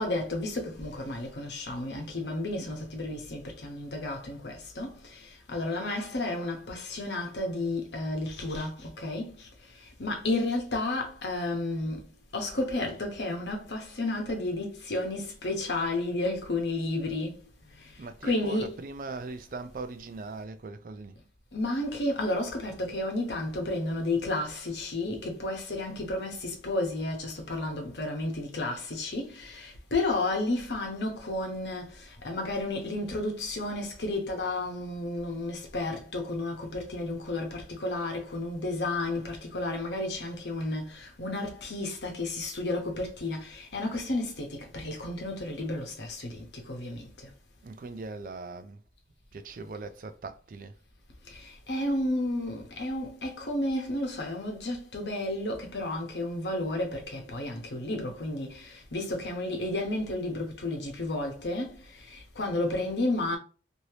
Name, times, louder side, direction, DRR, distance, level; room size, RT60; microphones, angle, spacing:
voice 1, 0.0-9.3 10.0-12.0 12.3-17.4 17.8-17.9 18.2-18.8 21.5-47.0 51.3-63.4, left 2 dB, 75° left, 1.0 m, -32 dB
voice 2, 18.0-21.2 47.6-48.8 49.3-50.7, right 3 dB, 50° right, 0.4 m, -40 dB
3.2 x 2.7 x 2.8 m
head